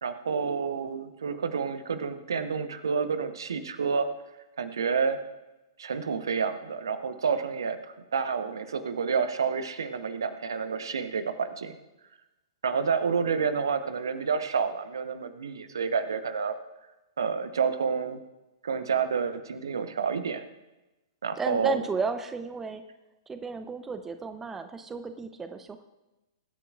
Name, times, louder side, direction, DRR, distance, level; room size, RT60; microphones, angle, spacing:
voice 1, 0.0-4.1 4.6-5.2 5.8-11.7 12.6-16.5 17.2-18.2 18.6-20.4 21.2-21.8, right 6 dB, 65° right, 10 dB, 1.0 m, -29 dB
voice 2, 21.4-22.8 23.3-25.8, right 4 dB, 10° right, 9 dB, 0.7 m, -33 dB
23.0 x 9.8 x 2.5 m, 1.1 s
figure-of-eight pair, 110°, 2 cm